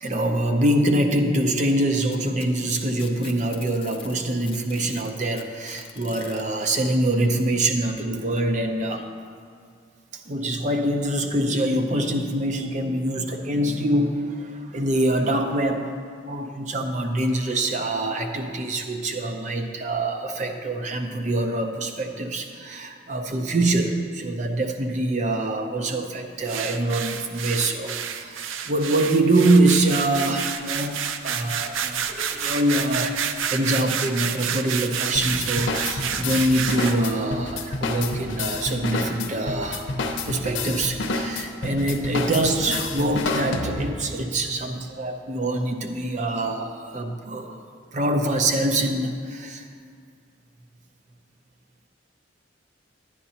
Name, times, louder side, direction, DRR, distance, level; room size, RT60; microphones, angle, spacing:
voice 1, 0.0-9.1 10.1-16.0 16.2-33.2 33.4-40.0 40.3-47.6 47.9-49.7, right 1 dB, 40° right, 4 dB, 0.6 m, -24 dB
Packing tape duct tape, 1.7-4.2 4.5-6.4 7.5-7.6 8.2-8.3 9.1-9.2, left 8 dB, 30° left, 0.5 m, -43 dB
sound 1, 26.5-37.1, right 8 dB, 90° right, 0.4 m, -29 dB
sound 2, 35.1-44.1, left 3 dB, 80° left, 0.7 m, -29 dB
11.0 x 9.8 x 2.8 m, 2.2 s
head